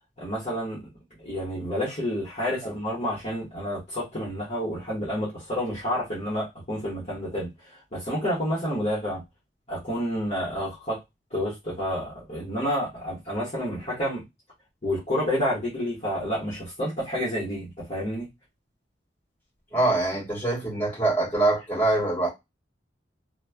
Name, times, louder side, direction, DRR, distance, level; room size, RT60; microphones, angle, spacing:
voice 1, 0.2-0.9 1.2-9.2 9.7-11.0 11.3-14.2 14.8-18.3, equal, 40° left, 1.2 m, -29 dB
voice 2, 19.7-22.3, right 2 dB, 10° left, 1.8 m, -24 dB
3.0 x 2.2 x 2.2 m
head